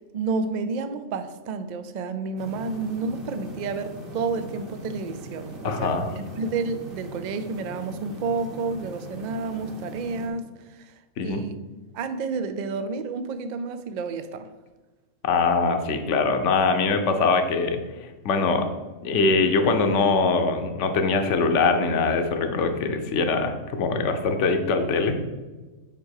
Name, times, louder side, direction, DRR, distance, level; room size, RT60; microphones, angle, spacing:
voice 1, 0.1-10.9 11.2-11.6 11.9-14.5, right 4 dB, 70° right, 10 dB, 0.4 m, -30 dB
sound 1, 2.4-10.3, right 1 dB, 45° right, 1.3 m, -40 dB
voice 2, 5.6-6.1 11.2-11.4 15.2-17.8 18.2-18.7 19.0-25.2, left 4 dB, 60° left, 6 dB, 1.1 m, -22 dB
5.8 x 4.7 x 6.4 m, 1.2 s
omnidirectional pair, 1.4 m